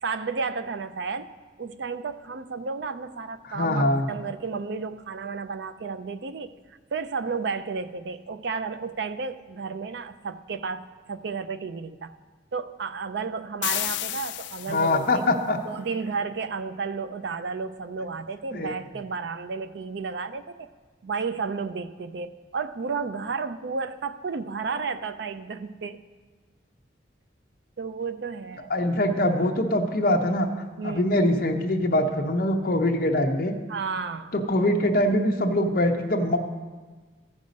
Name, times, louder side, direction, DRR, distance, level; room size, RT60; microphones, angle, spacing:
voice 1, 0.0-1.3 1.6-6.5 6.9-12.1 12.5-15.2 15.6-20.7 21.0-26.0 27.8-28.7 30.8-31.1 33.7-34.3, right 5 dB, 60° right, 12 dB, 0.4 m, -32 dB
voice 2, 3.5-4.1 14.7-15.6 18.5-18.7 28.7-30.5 30.8-33.5 34.3-36.4, left 1 dB, 50° left, 3 dB, 0.8 m, -23 dB
sound 1, 13.6-15.2, left 15 dB, 65° left, 0.3 m, -31 dB
14.0 x 5.4 x 5.2 m, 1.4 s
head